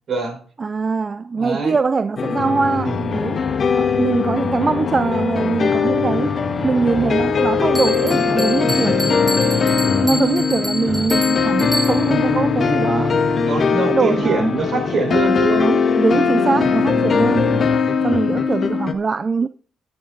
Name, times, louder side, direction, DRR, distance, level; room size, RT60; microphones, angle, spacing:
voice 1, 0.1-0.4 1.4-1.8 2.8-3.2 8.7-9.2 13.4-15.7 16.5-16.9 18.0-18.4, right 3 dB, 55° right, 4.7 m, -24 dB
voice 2, 0.6-3.4 3.8-6.3 6.6-9.0 10.0-13.2 13.9-14.6 15.6-17.6 18.0-19.5, right 4 dB, 35° right, 0.4 m, -22 dB
sound 1, 2.2-18.9, left 5 dB, 45° left, 1.3 m, -20 dB
sound 2, 5.6-15.1, left 1 dB, 10° left, 1.1 m, -33 dB
Bell, 7.7-12.3, equal, 15° right, 2.7 m, -27 dB
16.0 x 5.9 x 3.8 m
cardioid pair, 90°, 0 cm